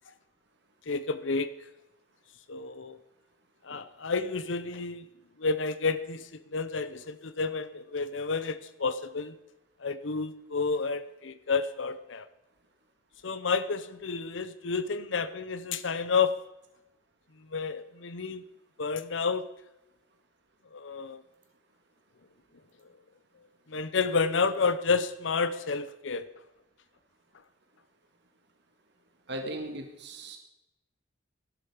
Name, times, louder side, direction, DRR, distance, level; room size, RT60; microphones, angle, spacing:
voice 1, 0.9-1.5 2.5-3.0 3.6-5.1 5.4-9.4 9.8-12.3 13.2-16.4 17.5-18.4 18.8-19.5 20.7-21.2 23.7-26.3, left 4 dB, 70° left, 14 dB, 0.8 m, -30 dB
voice 2, 29.3-30.4, right 1 dB, 60° right, 4 dB, 1.9 m, -37 dB
17.5 x 12.0 x 5.0 m, 0.92 s
head